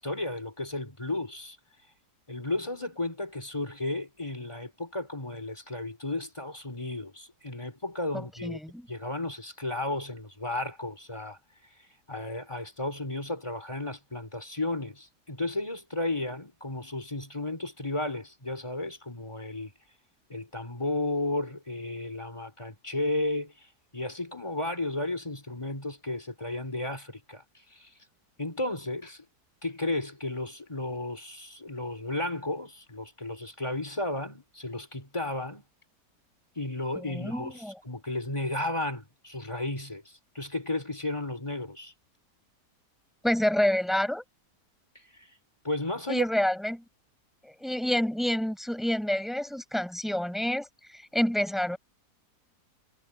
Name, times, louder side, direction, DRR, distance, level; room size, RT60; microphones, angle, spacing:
voice 1, 0.0-1.6 2.3-8.6 8.9-11.4 12.1-19.7 20.3-23.7 23.9-27.4 27.7-27.9 28.4-29.3 29.6-35.6 36.6-41.9 45.1-45.3 45.6-46.3, left 2 dB, 15° left, 4.1 m, -33 dB
voice 2, 8.1-8.9 37.0-37.7 43.2-44.2 46.1-46.8 47.4-50.7 50.9-51.8, left 1 dB, ahead, 6.3 m, -28 dB
omnidirectional pair, 1.8 m